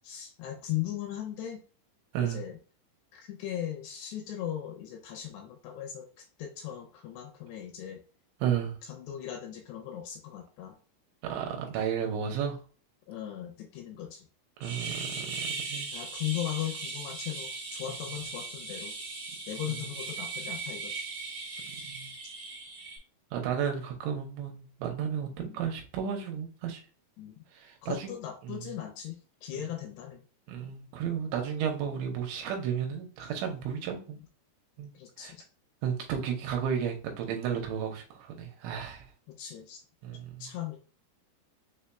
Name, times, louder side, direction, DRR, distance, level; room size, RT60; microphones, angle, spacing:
voice 1, 0.0-1.6 2.2-2.6 3.1-8.0 8.8-10.8 13.1-14.2 15.9-18.9 19.5-21.1 25.4-25.6 27.2-27.3 27.8-29.2 29.4-30.2 34.9-35.4 39.3-39.8 40.4-40.8, left 11 dB, 80° left, 2.6 m, -38 dB
voice 2, 8.4-8.8 11.3-12.6 14.6-15.9 19.7-19.8 21.9-22.1 23.3-26.8 27.5-28.1 28.4-28.7 29.5-29.6 30.5-34.2 34.8-34.9 35.2-35.3 35.8-39.1 40.0-40.5, right 8 dB, 80° right, 3.0 m, -33 dB
sound 1, 14.6-23.0, right 4 dB, 60° right, 1.5 m, -38 dB
6.9 x 2.8 x 2.2 m
omnidirectional pair, 5.3 m